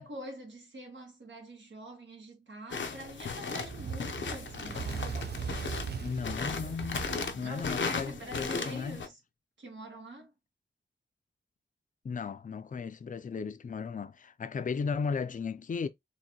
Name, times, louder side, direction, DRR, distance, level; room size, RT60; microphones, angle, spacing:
voice 1, 0.0-5.1 7.4-9.2 9.6-10.3, right 1 dB, 85° right, 1.7 m, -45 dB
sound 1, 2.7-9.1, left 4 dB, 85° left, 0.7 m, -36 dB
Fire, 3.6-8.2, right 6 dB, 60° right, 0.5 m, -39 dB
voice 2, 6.0-7.1 7.3-9.0 12.0-15.9, left 5 dB, 45° left, 0.4 m, -35 dB
4.6 x 2.6 x 2.9 m
wide cardioid pair, 95°, 19 cm